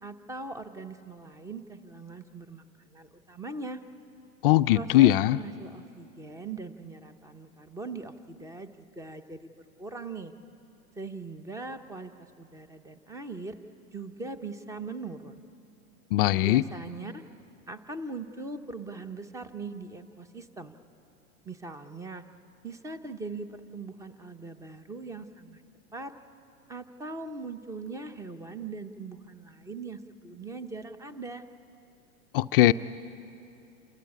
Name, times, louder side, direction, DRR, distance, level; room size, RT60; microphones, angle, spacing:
voice 1, 0.0-3.8 4.7-9.5 9.8-10.3 11.0-13.5 13.9-15.4 16.4-17.2 17.7-20.7 21.4-22.2 22.6-25.6 25.9-26.1 26.7-31.4, right 3 dB, 5° right, 10 dB, 0.8 m, -40 dB
voice 2, 4.4-5.4 16.1-16.6 32.3-32.7, left 15 dB, 45° left, 11 dB, 0.4 m, -20 dB
28.5 x 13.5 x 8.5 m, 2.7 s
hypercardioid pair, 120°, 43 cm